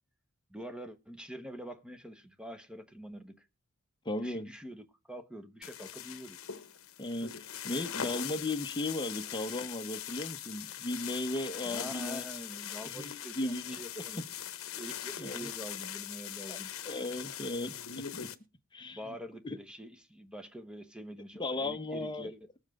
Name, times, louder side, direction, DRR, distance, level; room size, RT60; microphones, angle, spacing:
voice 1, 0.5-3.5 4.2-6.4 11.6-14.3 14.8-16.7 18.9-22.4, equal, 5° right, 1.0 m, -45 dB
voice 2, 4.0-4.5 7.0-12.2 12.9-14.3 15.2-15.5 16.5-16.6 16.9-18.3 18.7-19.0 19.4-19.6 21.4-22.3, left 2 dB, 20° left, 0.8 m, -36 dB
sound 1, 5.6-18.4, left 10 dB, 65° left, 1.0 m, -41 dB
20.0 x 7.2 x 3.6 m
head